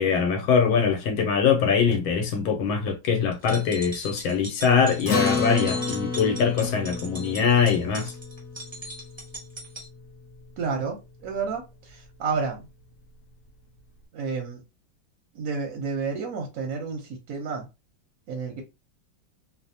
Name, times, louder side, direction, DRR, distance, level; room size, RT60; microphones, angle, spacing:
voice 1, 0.0-8.1, left 6 dB, 90° left, 1.4 m, -23 dB
sound 1, 3.3-9.9, right 1 dB, 40° right, 0.4 m, -39 dB
Acoustic guitar, 5.1-9.8, left 4 dB, 60° left, 0.9 m, -30 dB
voice 2, 10.6-12.7 14.1-14.6 15.3-17.7 18.3-18.6, right 5 dB, 65° right, 0.9 m, -30 dB
3.2 x 2.0 x 2.6 m
omnidirectional pair, 2.2 m